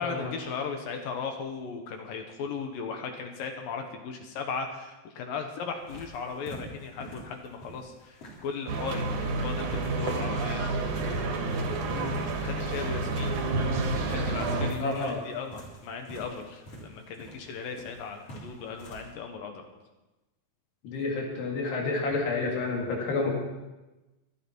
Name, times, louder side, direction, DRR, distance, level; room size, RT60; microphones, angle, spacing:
voice 1, 0.0-10.7 12.4-13.4 13.9-19.7, left 5 dB, 70° left, 4 dB, 2.6 m, -37 dB
sound 1, 5.7-19.1, right 1 dB, 40° left, 3.9 m, -48 dB
sound 2, 8.7-14.7, right 3 dB, 60° right, 2.8 m, -29 dB
voice 2, 14.8-15.2 20.8-23.3, left 3 dB, 90° left, -1 dB, 4.4 m, -30 dB
25.0 x 9.0 x 4.5 m, 1.1 s
omnidirectional pair, 4.6 m